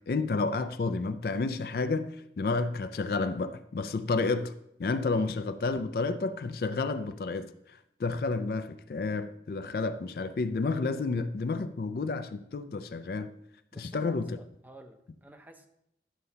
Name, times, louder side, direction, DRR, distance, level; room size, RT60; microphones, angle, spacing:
voice 1, 0.1-4.5 4.8-7.5 8.0-13.3 13.7-14.4, left 3 dB, 55° left, 0.4 m, -30 dB
voice 2, 13.7-15.7, right 1 dB, 10° right, 0.5 m, -51 dB
11.0 x 6.6 x 2.8 m
head